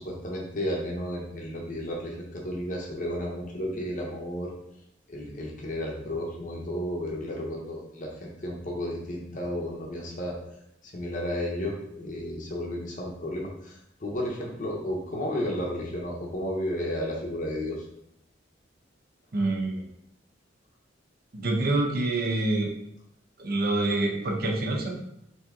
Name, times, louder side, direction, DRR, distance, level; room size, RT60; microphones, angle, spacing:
voice 1, 0.0-4.5 5.1-10.4 10.9-17.8, left 1 dB, 45° left, -2 dB, 0.7 m, -33 dB
voice 2, 19.3-19.8 21.3-22.7 23.4-25.0, right 2 dB, 55° right, 1 dB, 0.7 m, -26 dB
3.3 x 2.8 x 3.5 m, 0.78 s
head